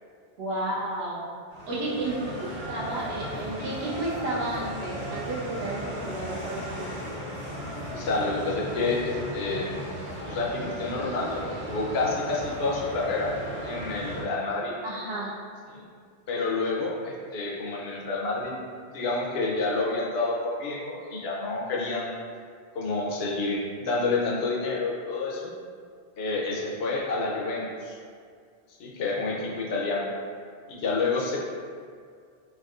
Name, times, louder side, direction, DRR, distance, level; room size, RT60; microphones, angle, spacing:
voice 1, 0.4-1.2 1.7-7.0 14.8-15.4, right 1 dB, 65° right, -5 dB, 0.9 m, -32 dB
sound 1, 1.5-14.2, equal, 25° right, 0.9 m, -36 dB
voice 2, 7.9-9.8 10.3-11.4 11.7-13.3 13.6-14.7 15.7-15.9 16.3-18.6 18.9-22.2 22.7-25.5 26.2-28.0 28.8-30.1 30.7-31.4, left 3 dB, 70° left, -3 dB, 0.8 m, -29 dB
3.5 x 2.6 x 2.4 m, 2.1 s
omnidirectional pair, 1.1 m